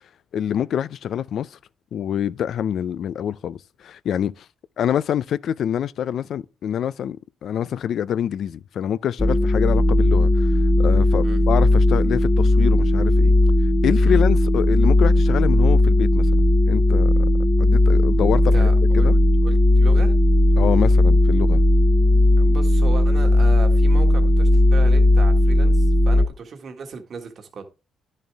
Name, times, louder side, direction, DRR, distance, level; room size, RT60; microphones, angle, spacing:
voice 1, 0.3-1.6 1.9-4.5 4.8-10.5 10.8-13.3 13.8-17.3 17.6-18.7 18.9-19.2 20.6-21.6, left 9 dB, 65° left, 0.4 m, -26 dB
sound 1, 9.2-26.3, left 1 dB, 15° left, 0.7 m, -16 dB
voice 2, 18.3-19.1 19.4-20.1 22.4-27.6, right 5 dB, 55° right, 1.6 m, -36 dB
10.5 x 6.6 x 3.5 m
cardioid pair, 90°, 0 cm